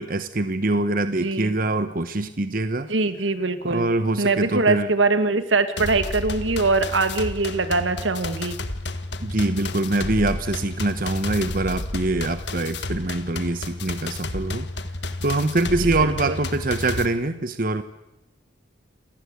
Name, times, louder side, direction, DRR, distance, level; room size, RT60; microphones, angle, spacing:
voice 1, 0.0-2.9 3.6-4.9 9.2-14.7 15.2-17.8, right 2 dB, 50° right, 10 dB, 1.1 m, -24 dB
voice 2, 1.2-1.5 2.9-3.9 4.2-8.6 15.8-16.4, right 3 dB, 80° right, 10 dB, 1.8 m, -23 dB
sound 1, 5.8-17.1, left 2 dB, 65° left, 1.6 m, -31 dB
28.0 x 18.0 x 8.3 m, 0.94 s
head